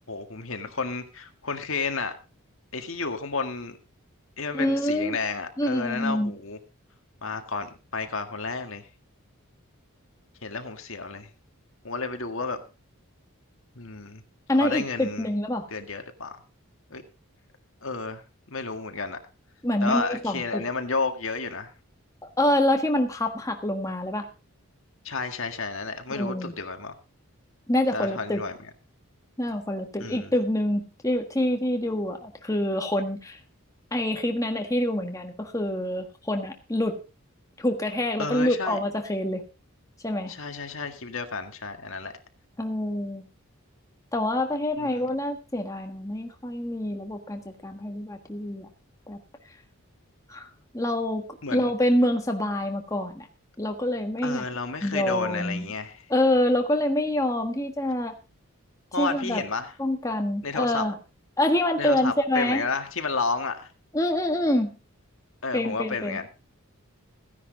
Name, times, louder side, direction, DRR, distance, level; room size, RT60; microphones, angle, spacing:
voice 1, 0.1-2.1 2.7-3.8 4.4-6.6 7.2-8.8 10.4-11.3 11.8-12.6 13.8-14.2 14.6-15.3 15.7-16.4 16.9-17.0 17.8-18.2 18.5-19.2 19.8-21.7 25.0-26.9 27.9-28.5 30.0-30.3 38.2-38.8 40.3-42.1 44.8-45.1 51.4-51.7 54.2-56.0 58.9-59.7 60.4-60.8 61.8-63.7 65.4-66.3, left 4 dB, 65° left, 6 dB, 1.9 m, -31 dB
voice 2, 4.5-5.2 5.6-6.3 14.5-15.7 19.6-20.7 22.4-24.3 26.1-26.5 27.7-28.4 29.4-33.4 33.9-37.0 37.6-39.4 40.0-40.3 42.6-43.3 44.1-48.7 49.1-49.2 50.3-50.5 50.7-53.3 53.6-54.4 54.8-55.7 56.1-58.1 59.0-59.4 59.8-61.0 61.4-62.6 63.9-64.7 65.5-66.2, left 1 dB, 15° left, 4 dB, 1.5 m, -26 dB
16.0 x 10.5 x 3.9 m, 0.31 s
head